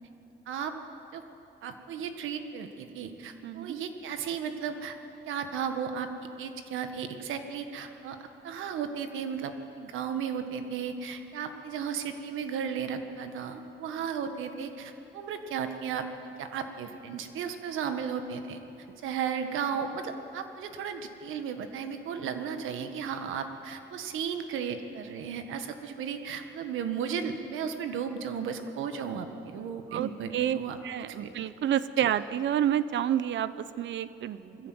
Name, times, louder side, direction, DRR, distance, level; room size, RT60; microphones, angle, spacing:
voice 1, 1.6-4.9 5.3-6.1 6.4-16.1 16.4-18.6 19.0-30.8 31.1-31.3 32.0-32.1, right 7 dB, 85° right, 7 dB, 1.6 m, -35 dB
voice 2, 3.4-3.7 29.9-30.6 30.8-34.7, right 10 dB, 70° right, 15 dB, 0.8 m, -29 dB
21.5 x 15.0 x 8.0 m, 2.8 s
cardioid pair, 90°, 20 cm